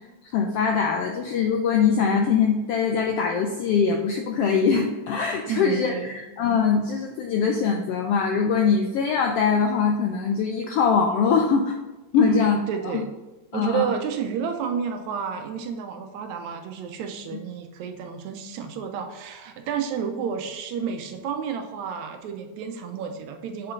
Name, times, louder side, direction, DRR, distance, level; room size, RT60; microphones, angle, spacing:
voice 1, 0.2-11.7 12.1-12.6 12.8-13.0 13.5-13.9, left 6 dB, 85° left, 2 dB, 1.3 m, -22 dB
voice 2, 5.5-6.2 12.2-13.1 13.5-23.7, right 7 dB, 80° right, 5 dB, 2.0 m, -30 dB
6.5 x 4.5 x 3.7 m, 1.1 s
omnidirectional pair, 3.3 m